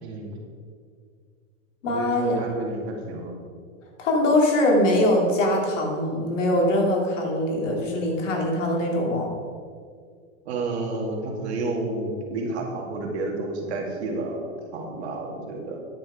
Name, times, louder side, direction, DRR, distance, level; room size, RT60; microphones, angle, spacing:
voice 1, 0.0-0.4 1.9-3.4 10.5-15.8, right 2 dB, 55° right, 1 dB, 2.2 m, -30 dB
voice 2, 1.8-2.4 4.0-9.3, left 1 dB, 65° left, 0 dB, 2.7 m, -22 dB
10.0 x 7.7 x 5.0 m, 2.1 s
supercardioid pair, 170°, 39 cm